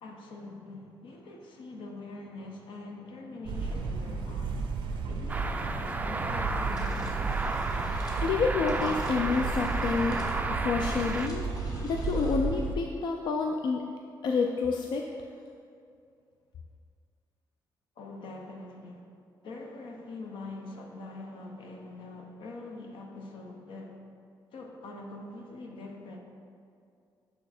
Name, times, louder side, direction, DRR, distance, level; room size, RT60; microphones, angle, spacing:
voice 1, 0.0-4.7 5.1-7.1 18.0-19.1 19.4-24.0 24.5-26.2, left 2 dB, 85° left, 1 dB, 0.8 m, -44 dB
sound 1, 3.5-12.7, right 4 dB, 85° right, 0.5 m, -33 dB
sound 2, 5.3-11.3, right 3 dB, 20° right, 0.3 m, -33 dB
sound 3, 6.6-12.4, left 1 dB, 50° left, 1.3 m, -51 dB
voice 2, 8.2-10.2 10.6-13.9 14.2-15.1, left 4 dB, 65° left, 2 dB, 0.4 m, -29 dB
8.2 x 3.5 x 4.2 m, 2.4 s
cardioid pair, 100°, 8 cm